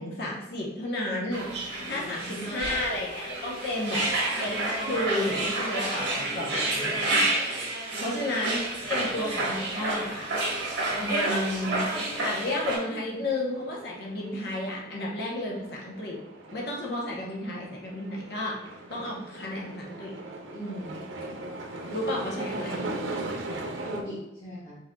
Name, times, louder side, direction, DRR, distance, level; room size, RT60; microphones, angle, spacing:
voice 1, 0.0-1.5 1.8-4.1 4.4-7.3 8.0-8.6 8.9-10.3 11.0-11.9 12.2-16.2 16.5-18.6 18.9-20.2 21.9-22.9, left 1 dB, 55° left, -2 dB, 0.9 m, -32 dB
sound 1, 1.3-12.8, right 2 dB, 65° right, 1.4 m, -29 dB
voice 2, 2.0-3.0 7.9-8.4 9.0-9.1 20.5-21.0 23.8-24.8, equal, 70° left, -10 dB, 1.5 m, -40 dB
sound 2, 9.7-24.0, right 2 dB, 90° right, 0.7 m, -40 dB
4.9 x 4.2 x 2.3 m, 0.92 s
head